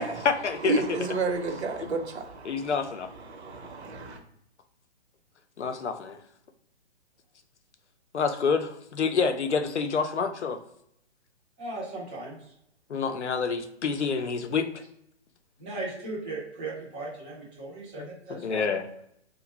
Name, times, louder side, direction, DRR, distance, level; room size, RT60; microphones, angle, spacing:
voice 1, 0.0-0.8 2.4-3.1 5.6-6.2 8.1-10.6 12.9-14.8 18.0-18.9, left 5 dB, 90° left, 0.5 m, -28 dB
voice 2, 0.6-2.7 3.3-4.2, right 3 dB, 70° right, 0.8 m, -30 dB
voice 3, 11.6-12.4 15.6-18.7, right 2 dB, 10° right, 0.4 m, -37 dB
2.5 x 2.1 x 3.1 m
figure-of-eight pair, 130°, 34 cm